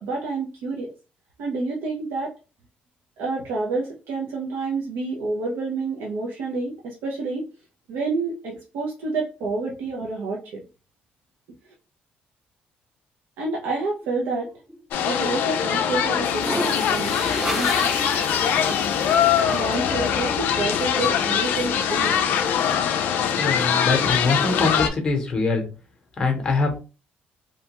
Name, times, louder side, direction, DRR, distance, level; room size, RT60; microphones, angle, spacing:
voice 1, 0.0-0.9 1.4-2.3 3.2-7.5 7.9-10.6 13.4-14.5 15.0-17.1 17.4-17.9 18.7-18.8 19.4-22.2, right 3 dB, 80° right, -2 dB, 0.6 m, -28 dB
sound 1, 14.0-14.8 16.1-19.9, equal, 5° right, 0.4 m, -31 dB
sound 2, 14.9-24.9, left 8 dB, 65° left, 0.3 m, -22 dB
voice 2, 23.3-25.6 26.2-26.8, left 3 dB, 20° left, 3 dB, 0.7 m, -23 dB
2.8 x 2.2 x 2.9 m, 0.33 s
cardioid pair, 180°, 4 cm